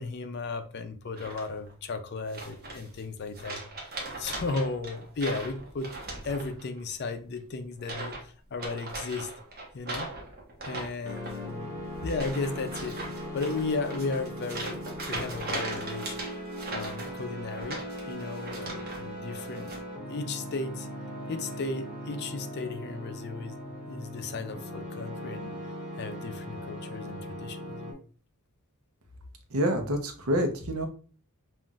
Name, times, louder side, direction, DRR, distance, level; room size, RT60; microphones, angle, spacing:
voice 1, 0.0-3.6 4.2-5.9 6.2-8.2 8.5-9.3 9.7-10.1 10.7-11.7 12.0-13.0 13.3-16.2 16.7-19.8 20.1-20.9 21.3-23.6 23.9-25.6 26.0-28.0, left 3 dB, 50° left, 8 dB, 0.5 m, -35 dB
sound 1, 1.1-1.7 2.3-3.0 3.3-6.8 7.0-7.4 7.8-8.2 8.5-19.0 19.3-19.8, right 2 dB, 45° right, 1.0 m, -39 dB
sound 2, 11.0-27.9, equal, 25° right, 1.6 m, -39 dB
voice 2, 29.5-30.9, equal, 75° right, 5 dB, 0.8 m, -27 dB
5.6 x 2.5 x 2.4 m, 0.39 s
head